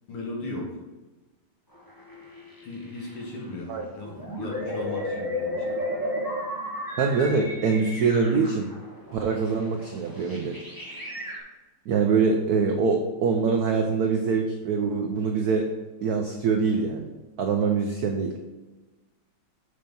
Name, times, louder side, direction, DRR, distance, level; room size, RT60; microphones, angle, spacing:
voice 1, 0.1-0.8 2.6-5.9, left 2 dB, 75° left, -2 dB, 2.5 m, -37 dB
sound 1, 1.7-3.4 3.7-11.4, left 1 dB, 15° left, 1.0 m, -34 dB
voice 2, 7.0-8.7 9.1-10.6 11.9-15.7 16.0-17.1 17.4-18.3, right 5 dB, 85° right, 3 dB, 0.8 m, -24 dB
6.6 x 4.3 x 5.3 m, 1.1 s
omnidirectional pair, 2.4 m